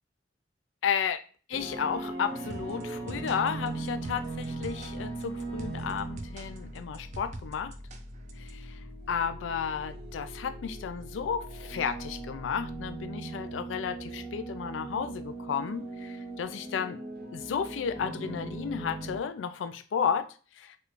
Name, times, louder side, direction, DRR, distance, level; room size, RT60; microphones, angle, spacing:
voice 1, 0.8-1.2 1.5-7.7 8.4-8.8 9.1-17.0 17.3-20.3 20.6-20.8, left 7 dB, 80° left, 0.4 m, -33 dB
sound 1, 1.5-19.2, right 2 dB, 55° right, 0.8 m, -39 dB
sound 2, 2.5-8.5, right 2 dB, 40° right, 0.4 m, -45 dB
3.3 x 2.5 x 3.1 m
head